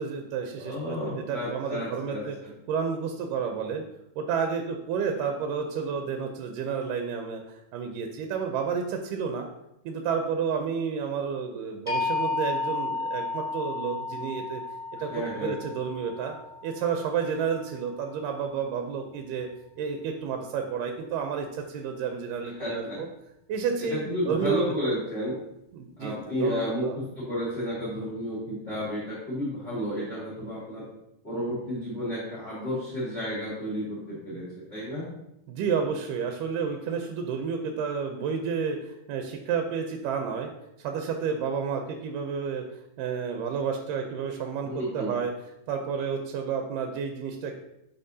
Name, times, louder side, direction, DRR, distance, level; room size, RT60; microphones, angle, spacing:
voice 1, 0.0-2.4 2.7-3.8 4.2-9.5 9.9-14.6 15.0-16.3 16.6-19.5 19.8-23.1 23.5-24.7 25.7-27.0 35.5-40.5 40.8-45.3 45.7-47.6, right 6 dB, 80° right, 4 dB, 2.1 m, -31 dB
voice 2, 0.6-2.5 14.9-15.6 22.6-23.0 23.9-25.4 26.0-30.9 31.2-35.1 44.6-45.1, equal, 25° left, -9 dB, 1.4 m, -32 dB
sound 1, 11.9-17.8, left 3 dB, 10° left, 0.4 m, -33 dB
11.0 x 4.2 x 2.7 m, 0.84 s
omnidirectional pair, 4.0 m